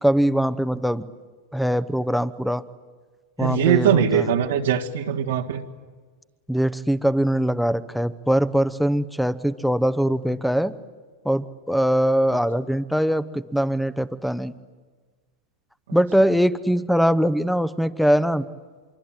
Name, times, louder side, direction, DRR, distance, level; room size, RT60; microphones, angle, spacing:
voice 1, 0.0-1.1 1.5-2.6 3.4-4.3 6.5-10.7 11.2-14.5 15.9-18.4, equal, ahead, 15 dB, 0.9 m, -22 dB
voice 2, 3.4-5.6, right 8 dB, 90° right, -1 dB, 1.8 m, -21 dB
25.5 x 24.0 x 9.0 m, 1.4 s
hypercardioid pair, 125°, 0 cm